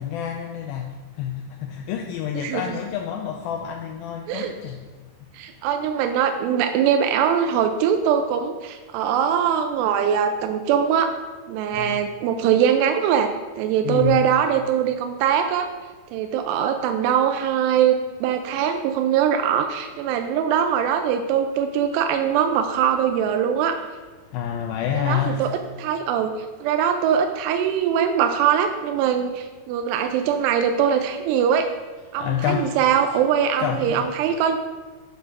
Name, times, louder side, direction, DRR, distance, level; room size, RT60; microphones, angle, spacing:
voice 1, 0.0-4.9 5.2-5.3 11.7-12.0 13.8-14.3 24.2-25.6 32.1-32.9 33.6-34.1, left 9 dB, 85° left, 3 dB, 2.1 m, -28 dB
voice 2, 2.4-2.8 4.3-4.5 5.3-11.1 11.5-13.3 13.6-15.7 16.1-23.8 24.9-25.5 25.8-26.3 26.6-31.7 32.1-34.6, right 8 dB, 85° right, 6 dB, 2.7 m, -22 dB
9.5 x 4.9 x 5.9 m, 1.3 s
omnidirectional pair, 4.8 m